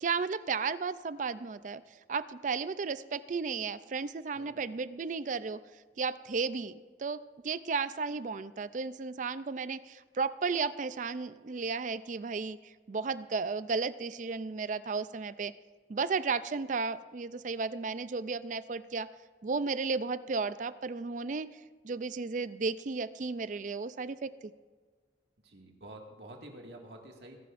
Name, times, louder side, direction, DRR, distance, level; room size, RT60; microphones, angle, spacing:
voice 1, 0.0-1.8 2.1-5.6 6.0-15.5 15.9-19.1 19.4-21.5 21.8-24.5, right 4 dB, 45° right, 15 dB, 0.4 m, -34 dB
voice 2, 4.3-4.7 25.4-27.4, right 1 dB, 70° right, 1 dB, 2.0 m, -49 dB
21.5 x 11.5 x 2.6 m, 1.5 s
head